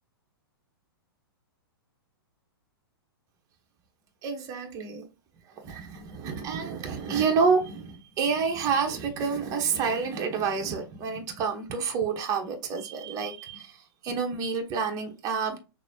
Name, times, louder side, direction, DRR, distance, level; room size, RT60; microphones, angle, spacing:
voice 1, 4.2-5.1 5.6-13.8 14.0-15.6, right 5 dB, 25° right, 0.9 m, -28 dB
6.0 x 2.1 x 2.6 m
figure-of-eight pair, 110°, 13 cm